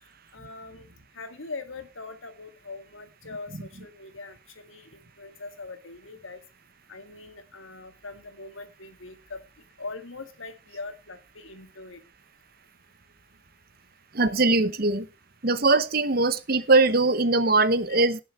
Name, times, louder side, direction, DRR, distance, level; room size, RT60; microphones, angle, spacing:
voice 1, 0.3-0.9 1.1-6.4 6.9-9.4 9.8-12.0 17.9-18.0, left 3 dB, 85° left, 2.1 m, -41 dB
voice 2, 14.1-15.1 15.4-18.2, right 3 dB, 50° right, 1.0 m, -21 dB
17.0 x 7.0 x 4.3 m
head